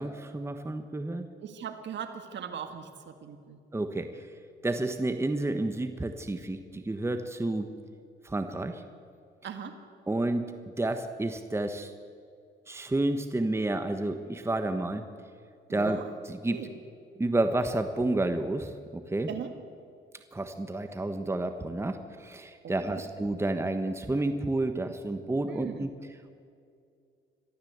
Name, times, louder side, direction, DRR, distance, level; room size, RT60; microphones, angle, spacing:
voice 1, 0.0-1.3 3.7-4.3 4.6-7.7 8.2-8.8 10.1-11.9 12.7-15.0 15.7-16.0 16.3-16.6 17.2-19.3 20.3-25.9, right 2 dB, 15° right, 8 dB, 1.3 m, -30 dB
voice 2, 1.4-3.6 9.4-9.8 15.7-16.1 16.5-16.7 19.3-19.5 22.9-23.0 25.4-25.8, right 7 dB, 65° right, 7 dB, 1.8 m, -39 dB
22.5 x 14.0 x 8.1 m, 2.3 s
cardioid pair, 90°, 20 cm